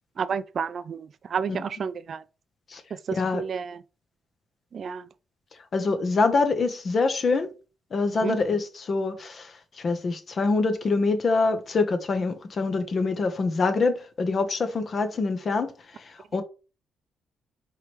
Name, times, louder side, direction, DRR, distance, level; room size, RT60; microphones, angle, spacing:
voice 1, 0.2-2.2 2.9-3.8 4.7-5.1 8.2-8.4, right 6 dB, 55° right, 0.3 m, -31 dB
voice 2, 3.1-3.4 5.7-7.5 7.9-15.7 16.3-16.4, left 3 dB, 50° left, 0.9 m, -25 dB
4.8 x 3.2 x 3.0 m
cardioid pair, 80°, 0 cm